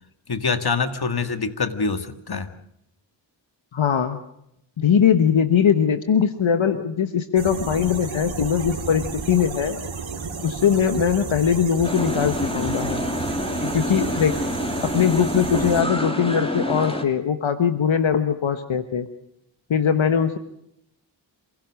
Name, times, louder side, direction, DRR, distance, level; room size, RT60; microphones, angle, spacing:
voice 1, 0.3-2.5, left 4 dB, 55° left, 9 dB, 1.9 m, -25 dB
voice 2, 3.7-4.2 4.8-9.8 10.4-13.0 13.7-14.3 14.8-19.1 19.7-20.4, left 7 dB, 80° left, 9 dB, 1.3 m, -21 dB
sound 1, 7.4-15.8, right 4 dB, 90° right, 2.9 m, -33 dB
sound 2, 11.8-17.0, equal, 10° left, 3.1 m, -27 dB
26.5 x 17.0 x 6.4 m, 0.77 s
cardioid pair, 45°, 46 cm